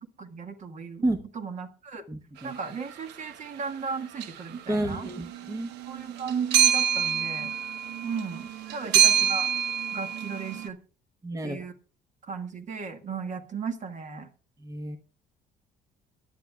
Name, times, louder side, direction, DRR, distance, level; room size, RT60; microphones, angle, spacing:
voice 1, 0.0-1.0 1.3-2.0 2.4-5.1 5.8-7.5 8.0-9.5 9.9-10.8 11.4-11.7 12.2-14.3, right 5 dB, 45° right, 8 dB, 1.6 m, -35 dB
voice 2, 2.1-2.5 4.7-5.7 11.2-11.6 14.6-15.0, right 1 dB, 20° right, 8 dB, 1.0 m, -30 dB
sound 1, 2.9-3.1 4.2-4.6 4.9-10.7, right 9 dB, 85° right, 0.9 m, -26 dB
22.5 x 10.5 x 2.3 m, 0.36 s
cardioid pair, 110°, 17 cm